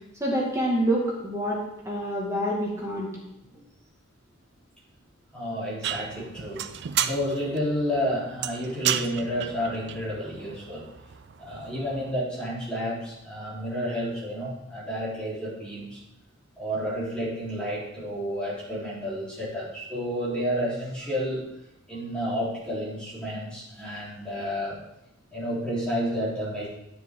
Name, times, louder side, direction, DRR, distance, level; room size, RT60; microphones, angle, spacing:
voice 1, 0.2-3.1, right 1 dB, 15° right, -4 dB, 1.9 m, -27 dB
voice 2, 5.3-6.6 7.0-10.8 11.4-16.0 16.6-21.4 21.9-24.8 25.3-26.7, equal, 5° left, -9 dB, 3.7 m, -30 dB
sound 1, 5.8-12.1, right 10 dB, 50° right, 0.4 m, -33 dB
9.9 x 9.8 x 3.7 m, 0.87 s
head